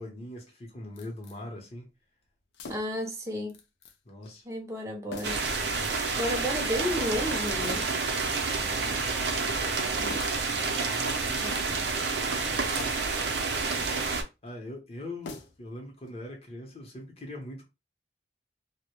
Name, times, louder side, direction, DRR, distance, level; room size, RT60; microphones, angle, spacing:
voice 1, 0.0-1.9 4.1-4.5 5.8-6.1 8.5-9.1 10.8-11.8 12.3-13.0 14.4-17.7, left 1 dB, 35° left, 0.7 m, -42 dB
sound 1, 1.0-1.4 2.5-3.1 3.5-4.0 4.2-4.4 5.1-5.5 6.0-6.6 7.6-8.0 8.4-9.0 10.1-10.5 11.1-11.8 12.7-13.2 13.7-14.1 15.2-15.8 16.1-16.2, left 3 dB, 85° left, 0.4 m, -45 dB
voice 2, 2.7-3.6 4.5-5.4 6.2-7.9 10.0-10.5 11.4-11.6, equal, 15° right, 0.5 m, -32 dB
sound 2, 5.2-14.2, right 4 dB, 80° right, 0.5 m, -29 dB
2.1 x 2.0 x 2.9 m
head